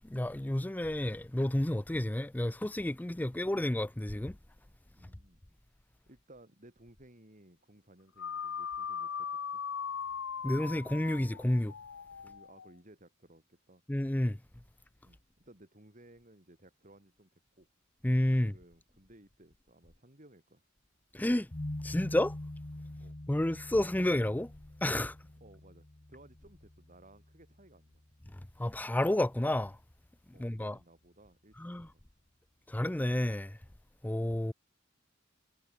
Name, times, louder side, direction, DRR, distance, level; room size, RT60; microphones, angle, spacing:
voice 1, 0.0-4.4 10.4-11.7 13.9-14.4 18.0-18.5 21.1-21.5 21.8-22.4 23.3-24.5 24.8-25.2 28.3-29.8 30.4-30.8 31.6-31.9 32.7-33.6 34.0-34.5, left 1 dB, 10° left, 0.5 m, -30 dB
voice 2, 5.0-5.4 6.1-9.6 12.2-13.8 15.0-17.3 17.6-17.7 18.4-20.7 23.0-23.2 25.4-28.0 30.3-32.0, right 1 dB, 40° right, 5.3 m, -59 dB
sound 1, 8.2-12.7, left 7 dB, 80° left, 0.7 m, -39 dB
sound 2, 21.5-28.6, left 1 dB, 30° left, 1.1 m, -45 dB
head